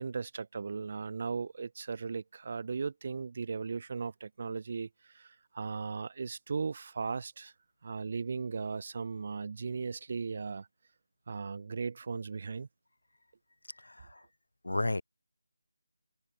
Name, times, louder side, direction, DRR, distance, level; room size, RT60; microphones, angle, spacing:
voice 1, 0.0-4.9 5.1-7.5 7.8-10.7 11.3-12.7, right 5 dB, 35° right, 1.1 m, -37 dB
voice 2, 13.7-14.2 14.6-15.0, left 2 dB, 85° left, 2.0 m, -33 dB
figure-of-eight pair, 170°, 0 cm